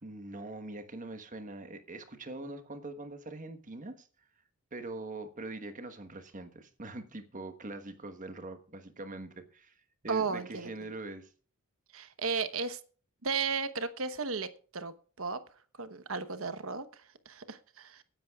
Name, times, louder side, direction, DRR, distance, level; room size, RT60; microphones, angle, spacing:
voice 1, 0.0-4.1 4.7-9.7 10.0-11.3, right 2 dB, 35° right, 1.3 m, -43 dB
voice 2, 10.1-10.7 11.9-12.8 13.2-15.4 15.8-17.0 17.3-18.0, right 5 dB, 70° right, 1.1 m, -34 dB
23.0 x 10.5 x 2.4 m
head